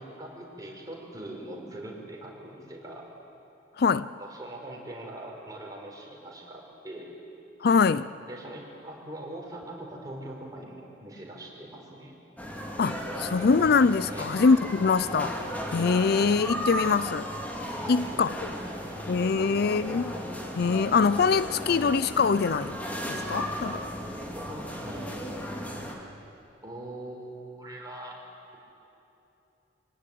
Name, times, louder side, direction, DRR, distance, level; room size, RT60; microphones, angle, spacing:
voice 1, 0.0-3.1 4.2-7.1 8.2-12.2 14.1-14.3 17.8-18.2 18.5-19.8 23.2-23.5 24.3-25.1 26.6-28.2, right 1 dB, 20° right, -2 dB, 5.2 m, -42 dB
voice 2, 3.8-4.1 7.6-8.1 12.8-15.4 15.7-17.3 17.9-18.4 19.1-20.1 20.6-22.8 23.1-23.8, left 5 dB, 60° left, 15 dB, 0.4 m, -23 dB
sound 1, 12.4-25.9, equal, 10° left, 2.7 m, -35 dB
25.0 x 18.0 x 9.3 m, 2.9 s
head